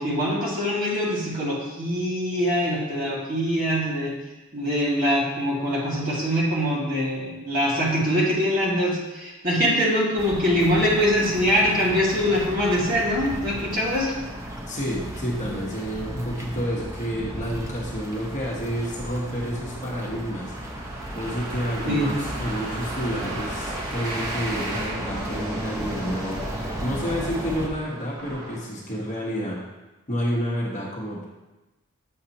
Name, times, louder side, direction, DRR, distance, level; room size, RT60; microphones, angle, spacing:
voice 1, 0.0-4.1 4.5-14.1 21.9-22.1, equal, 40° right, -6 dB, 2.1 m, -23 dB
sound 1, 10.2-27.7, equal, 15° right, 0.6 m, -35 dB
voice 2, 14.7-20.5 21.1-26.4 26.8-29.6 30.1-31.2, equal, 35° left, -4 dB, 1.2 m, -29 dB
sound 2, 18.1-29.3, right 2 dB, 90° right, 1.5 m, -38 dB
8.0 x 6.5 x 2.9 m, 1.1 s
head